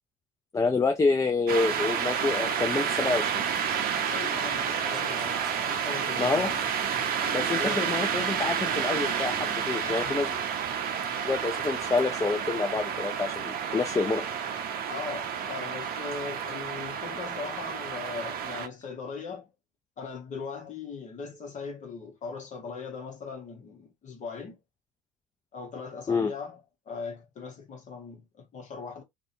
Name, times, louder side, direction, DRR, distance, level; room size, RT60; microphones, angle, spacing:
voice 1, 0.5-3.5 6.2-6.5 7.3-10.4 11.2-14.2 26.1-26.3, left 4 dB, 15° left, 0.4 m, -27 dB
sound 1, 1.5-18.7, right 7 dB, 55° right, 0.6 m, -30 dB
sound 2, 2.4-9.4, equal, ahead, 1.5 m, -47 dB
voice 2, 4.1-6.7 7.5-7.9 9.8-10.2 14.9-19.5 20.0-24.6 25.5-26.6 26.9-29.0, left 5 dB, 40° left, 1.0 m, -39 dB
2.6 x 2.2 x 2.5 m
supercardioid pair, 80°, 18 cm